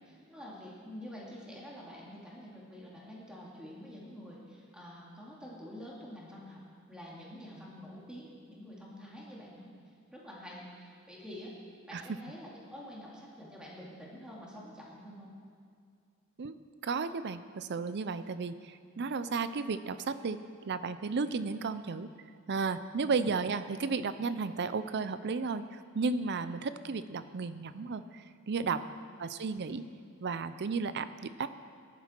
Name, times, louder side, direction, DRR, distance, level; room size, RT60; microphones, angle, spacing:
voice 1, 0.1-6.6 6.9-9.7 10.1-11.5 11.9-15.3 28.7-29.0, equal, 5° right, -5 dB, 2.4 m, -47 dB
voice 2, 16.8-20.4 20.6-22.1 22.5-28.8 29.2-29.9 30.2-31.5, right 4 dB, 50° right, 12 dB, 0.5 m, -33 dB
17.0 x 11.0 x 4.5 m, 2.2 s
head